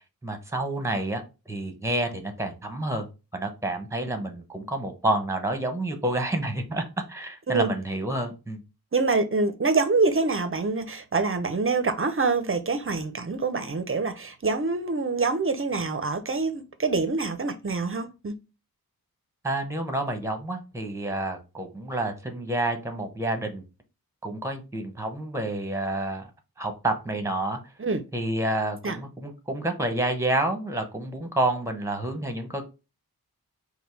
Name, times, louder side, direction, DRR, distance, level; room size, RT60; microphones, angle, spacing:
voice 1, 0.2-1.2 1.5-3.1 3.3-8.6 19.4-23.6 24.2-26.3 26.6-27.6 28.1-32.6, right 1 dB, 10° right, 0.9 m, -29 dB
voice 2, 8.9-18.3 27.8-28.0 28.8-29.0, right 4 dB, 35° right, 0.6 m, -25 dB
5.2 x 2.2 x 4.5 m
wide cardioid pair, 120°, 37 cm